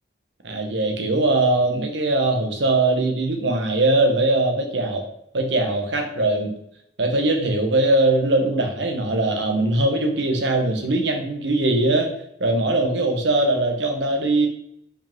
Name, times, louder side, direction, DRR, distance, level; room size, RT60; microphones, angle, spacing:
voice 1, 0.4-5.0 5.3-6.5 7.0-12.1 12.4-14.5, right 2 dB, 85° right, 3 dB, 1.2 m, -21 dB
5.3 x 4.9 x 3.7 m, 0.73 s
head